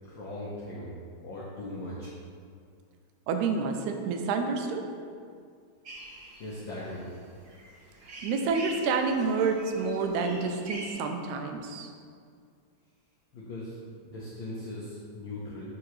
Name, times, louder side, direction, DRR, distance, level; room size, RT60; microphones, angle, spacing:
voice 1, 0.0-0.9 1.2-2.1 6.4-7.1 13.3-13.8 14.0-15.7, left 1 dB, 85° left, -6 dB, 1.0 m, -39 dB
voice 2, 3.3-4.8 8.2-11.9, right 4 dB, 85° right, 5 dB, 2.0 m, -28 dB
sound 1, 5.8-10.9, right 2 dB, 50° right, 1.2 m, -44 dB
9.1 x 3.8 x 3.1 m, 2.2 s
omnidirectional pair, 3.3 m